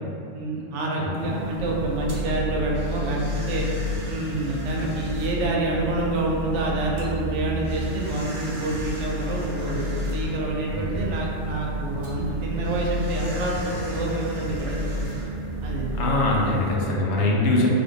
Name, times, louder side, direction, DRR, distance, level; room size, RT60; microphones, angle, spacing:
voice 1, 0.3-3.7 4.1-14.8 15.6-15.9, right 2 dB, 75° right, -2 dB, 0.9 m, -28 dB
voice 2, 1.0-1.3 10.7-11.0 15.9-17.7, left 2 dB, 70° left, -3 dB, 0.9 m, -23 dB
sound 1, 1.1-16.8, right 4 dB, 40° right, 0.6 m, -35 dB
sound 2, 1.6-16.5, left 1 dB, 90° right, 1.2 m, -32 dB
3.5 x 2.5 x 2.7 m, 2.7 s
omnidirectional pair, 1.3 m